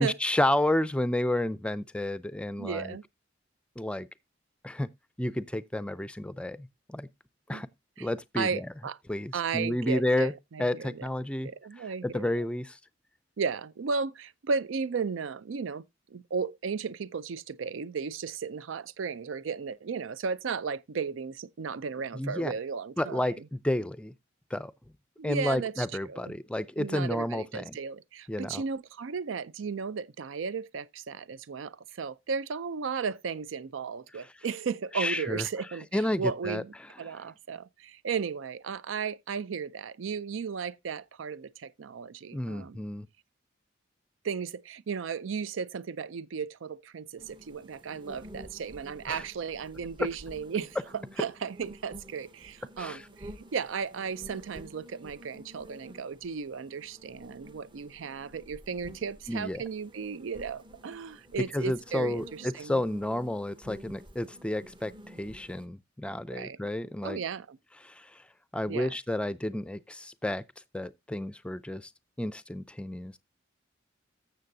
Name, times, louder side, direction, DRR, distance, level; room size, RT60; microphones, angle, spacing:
voice 1, 0.0-3.0 3.8-4.1 4.6-4.9 5.2-7.1 7.5-7.7 8.0-8.7 9.1-10.3 10.6-11.5 12.0-12.8 22.1-22.5 23.0-24.1 24.5-24.7 25.2-27.8 28.3-28.6 34.9-35.5 35.9-36.6 42.3-43.1 49.1-49.2 52.8-53.0 59.3-59.6 61.4-67.2 67.8-68.1 68.5-70.4 70.7-71.9 72.2-73.2, left 1 dB, 5° left, 0.4 m, -31 dB
voice 2, 2.6-3.0 7.5-7.6 8.0-8.1 8.4-9.0 9.3-11.0 11.4-12.5 13.4-15.8 16.1-23.4 25.2-26.4 26.8-42.8 44.2-50.8 51.2-62.8 66.3-66.6 67.0-67.6 68.7-68.9, right 5 dB, 85° right, 0.5 m, -35 dB
sound 1, 47.2-65.7, equal, 25° right, 0.8 m, -50 dB
14.5 x 6.8 x 2.6 m
head